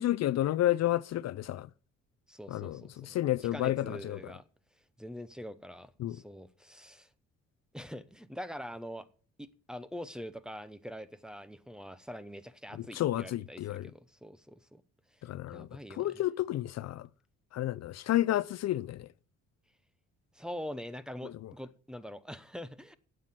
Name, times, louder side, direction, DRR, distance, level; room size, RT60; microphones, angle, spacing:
voice 1, 0.0-1.7 2.5-4.2 6.0-6.2 12.8-13.9 15.2-17.1 17.5-19.1 21.2-21.5, left 14 dB, 60° left, 0.5 m, -31 dB
voice 2, 2.3-3.1 3.5-4.4 5.0-7.1 7.7-9.1 9.4-14.8 15.5-16.2 20.3-22.9, equal, ahead, 0.9 m, -44 dB
9.3 x 7.8 x 7.5 m
cardioid pair, 90°, 30 cm